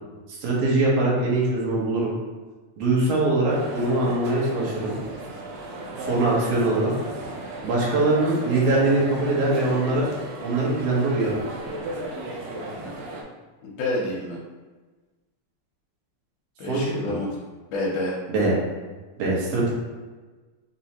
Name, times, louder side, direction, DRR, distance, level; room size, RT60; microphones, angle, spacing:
voice 1, 0.3-2.1 2.8-4.9 6.0-6.9 7.6-10.1 10.4-11.4 16.7-17.2 18.3-18.5 19.2-19.7, right 2 dB, 60° right, -5 dB, 1.9 m, -22 dB
sound 1, 3.5-13.2, right 2 dB, 80° right, 1.5 m, -35 dB
voice 2, 13.6-14.4 16.6-17.3 17.7-18.1, left 1 dB, 80° left, -4 dB, 2.2 m, -28 dB
5.3 x 2.7 x 2.9 m, 1.3 s
omnidirectional pair, 3.6 m